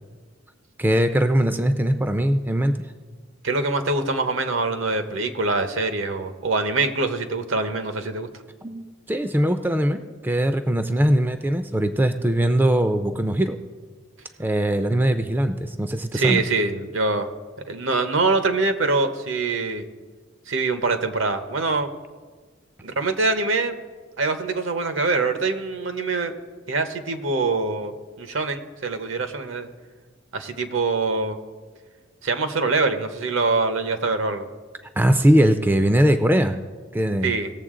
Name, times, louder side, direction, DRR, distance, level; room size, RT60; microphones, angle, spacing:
voice 1, 0.8-2.8 8.6-13.6 14.4-16.4 35.0-36.6 36.9-37.3, right 1 dB, 10° right, 8 dB, 0.4 m, -21 dB
voice 2, 3.4-8.3 16.1-17.3 17.7-19.8 20.5-21.9 22.8-23.8 24.2-26.3 26.7-29.7 30.3-31.4 32.2-34.4 37.2-37.5, right 3 dB, 75° right, 8 dB, 0.9 m, -24 dB
18.0 x 7.3 x 3.7 m, 1.5 s
head